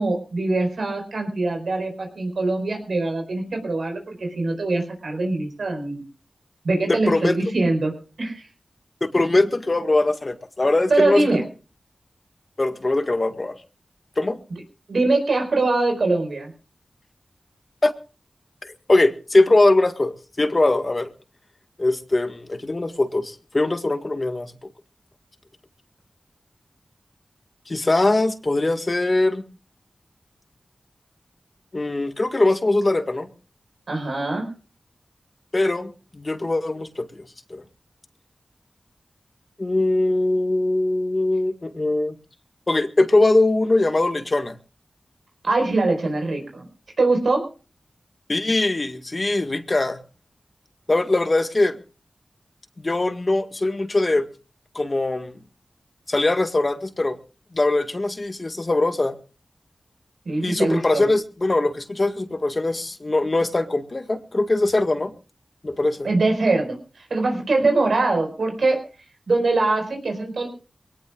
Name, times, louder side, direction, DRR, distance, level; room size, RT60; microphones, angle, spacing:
voice 1, 0.0-6.0 6.6-7.9 8.2-8.5 10.9-11.4 14.5-14.6 14.9-16.5 33.9-34.5 45.4-46.6 47.0-47.5 60.2-61.1 66.0-68.8 69.3-70.5, right 2 dB, 85° right, 4.7 m, -23 dB
voice 2, 6.9-7.4 9.0-11.3 12.6-13.6 14.2-14.4 17.8-17.9 18.6-21.1 21.8-24.5 27.7-29.4 31.7-33.3 35.5-37.2 37.5-37.6 39.6-42.2 42.7-44.6 48.3-50.0 50.9-51.8 52.8-54.3 54.8-55.3 56.1-57.2 57.5-59.2 60.4-65.1 65.6-66.1, left 2 dB, 45° left, 1.8 m, -21 dB
23.5 x 18.0 x 2.4 m
cardioid pair, 45°, 0 cm